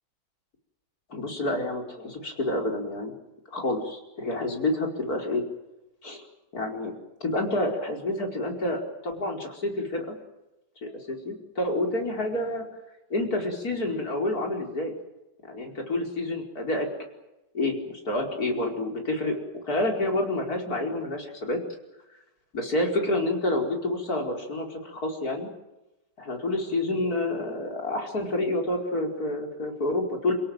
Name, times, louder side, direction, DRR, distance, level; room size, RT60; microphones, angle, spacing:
voice 1, 1.1-3.1 3.5-5.4 6.0-6.2 6.5-6.9 7.2-10.2 10.8-12.7 13.1-14.9 15.5-16.9 17.5-19.4 19.6-21.6 22.5-25.5 26.2-30.3, left 1 dB, 60° left, 2 dB, 5.4 m, -28 dB
29.0 x 17.5 x 9.2 m, 0.96 s
omnidirectional pair, 1.8 m